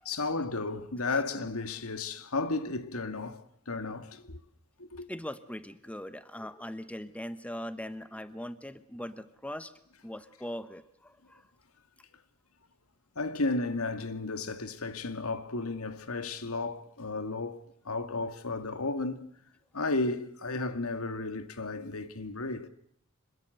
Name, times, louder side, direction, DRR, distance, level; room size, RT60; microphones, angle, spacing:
voice 1, 0.1-4.4 4.8-5.1 13.2-19.2 19.7-22.7, left 3 dB, 90° left, 2.1 m, -33 dB
voice 2, 5.1-9.7 10.0-11.5, left 1 dB, 5° left, 1.1 m, -40 dB
26.5 x 21.5 x 8.0 m
head